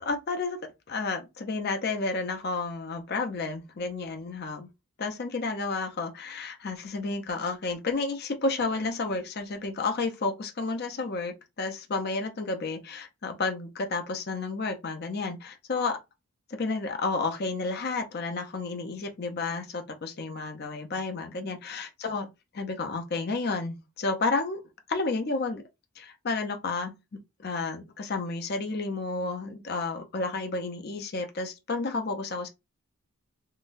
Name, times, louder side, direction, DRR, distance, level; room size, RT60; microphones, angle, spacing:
voice 1, 0.1-0.6 0.9-4.7 5.0-16.0 16.6-22.3 22.5-24.6 24.9-25.6 26.0-26.9 27.4-32.5, left 3 dB, 45° left, 0.5 m, -31 dB
3.7 x 2.1 x 2.5 m
head